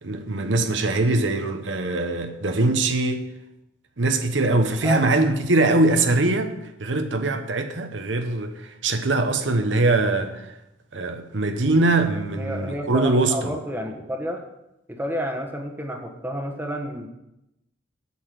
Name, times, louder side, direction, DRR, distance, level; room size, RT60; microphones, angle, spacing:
voice 1, 0.0-3.3 4.0-10.5 10.9-13.5, right 2 dB, 80° right, 1.0 m, -22 dB
voice 2, 12.4-14.4 14.9-17.1, equal, 10° right, 1.2 m, -30 dB
8.3 x 7.2 x 7.7 m
head